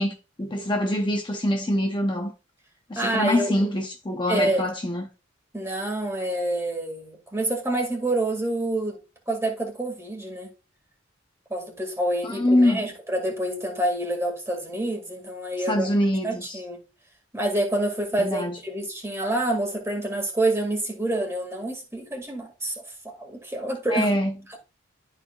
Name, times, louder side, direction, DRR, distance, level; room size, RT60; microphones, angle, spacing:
voice 1, 0.0-2.3 2.9-5.1 12.2-12.8 15.7-16.6 18.2-18.6 23.9-24.3, left 1 dB, 25° left, 0.7 m, -24 dB
voice 2, 3.0-3.6 4.3-4.7 5.5-9.0 9.3-10.5 11.5-15.9 16.2-16.8 17.3-24.1, right 1 dB, 15° right, 2.1 m, -27 dB
12.5 x 4.7 x 2.3 m
head